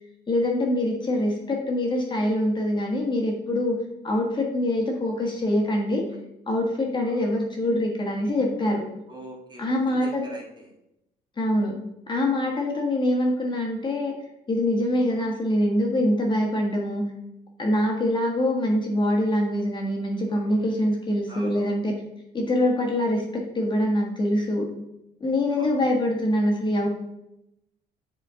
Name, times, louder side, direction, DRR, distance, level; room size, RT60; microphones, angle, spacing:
voice 1, 0.3-3.8 4.0-6.0 6.5-8.9 9.6-10.2 11.4-11.8 12.1-14.1 14.5-17.0 17.6-21.9 22.3-24.7 25.2-26.9, left 1 dB, 25° left, 0 dB, 1.4 m, -24 dB
voice 2, 7.0-7.4 9.1-10.8 21.3-21.7 25.5-25.8, right 2 dB, 25° right, -1 dB, 1.8 m, -43 dB
7.6 x 4.5 x 3.6 m, 0.85 s
cardioid pair, 110°, 17 cm